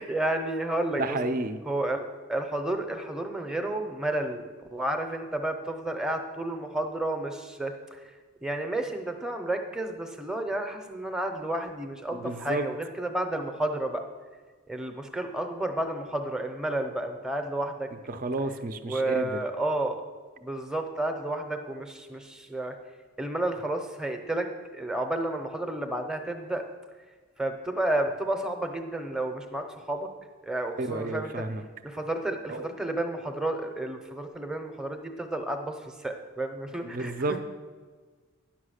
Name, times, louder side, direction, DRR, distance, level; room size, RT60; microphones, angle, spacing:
voice 1, 0.0-1.2 1.7-4.4 4.7-8.0 8.4-14.0 14.7-17.9 18.8-20.0 20.4-22.7 23.2-26.6 27.4-30.1 30.4-31.4 31.8-37.4, right 1 dB, 5° right, 5 dB, 0.7 m, -31 dB
voice 2, 1.0-1.6 12.1-12.7 18.1-19.4 30.8-31.6 32.5-32.7 36.8-37.4, right 2 dB, 40° right, 9 dB, 0.5 m, -31 dB
10.5 x 5.9 x 6.4 m, 1.5 s
head